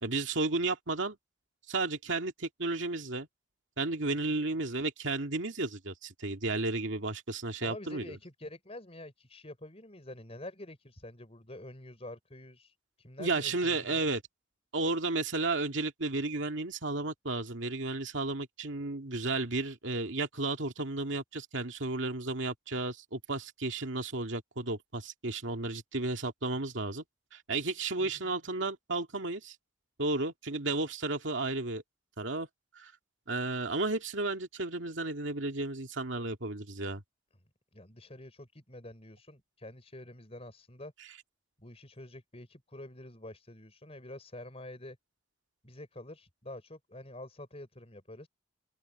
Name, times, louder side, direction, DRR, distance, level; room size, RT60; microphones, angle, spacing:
voice 1, 0.0-1.2 1.7-3.3 3.8-8.2 13.2-14.2 14.7-27.0 27.3-29.5 30.0-31.8 32.2-32.5 32.8-32.9 33.3-37.0, right 3 dB, 65° right, 2.3 m, -33 dB
voice 2, 7.6-14.0 28.0-28.3 37.7-40.9 41.6-45.0 45.6-48.3, left 1 dB, 30° left, 5.1 m, -47 dB
open air
head